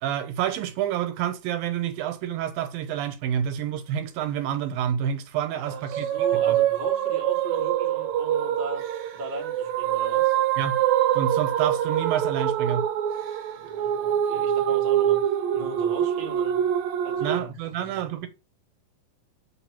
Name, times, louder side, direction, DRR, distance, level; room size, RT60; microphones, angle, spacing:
voice 1, 0.0-6.1 6.4-6.6 10.6-10.8 11.1-12.9 17.2-18.3, right 9 dB, 85° right, 2.7 m, -28 dB
voice 2, 5.5-8.8 9.1-10.4 13.5-15.2 15.5-16.7 17.0-18.3, right 2 dB, 35° right, 0.7 m, -39 dB
sound 1, 5.7-17.4, right 11 dB, 70° right, 1.8 m, -25 dB
6.9 x 4.0 x 5.8 m
omnidirectional pair, 4.1 m